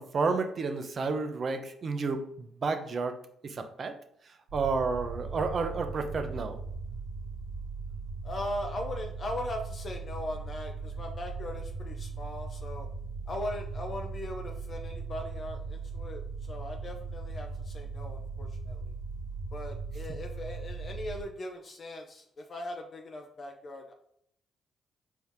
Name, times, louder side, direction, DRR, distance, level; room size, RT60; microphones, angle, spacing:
voice 1, 0.0-3.2 3.4-3.9 4.5-6.6, right 4 dB, 50° right, 7 dB, 0.6 m, -31 dB
sound 1, 4.5-21.2, right 4 dB, 75° right, 1.2 m, -39 dB
voice 2, 8.2-12.9 13.3-18.9 19.5-23.9, left 1 dB, 50° left, 2 dB, 0.6 m, -39 dB
4.5 x 2.8 x 3.6 m, 0.68 s
supercardioid pair, 60°, 0 cm